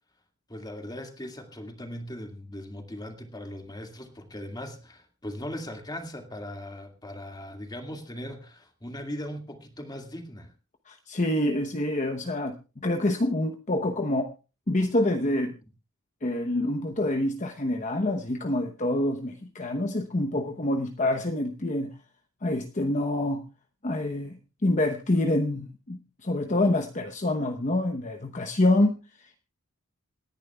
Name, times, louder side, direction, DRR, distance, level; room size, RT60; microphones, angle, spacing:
voice 1, 0.5-10.5, left 1 dB, 20° left, 4 dB, 2.0 m, -39 dB
voice 2, 10.9-14.3 14.7-15.5 16.2-21.9 22.4-23.4 23.8-29.4, left 1 dB, 35° left, 5 dB, 0.9 m, -27 dB
27.5 x 10.5 x 2.3 m, 0.31 s
head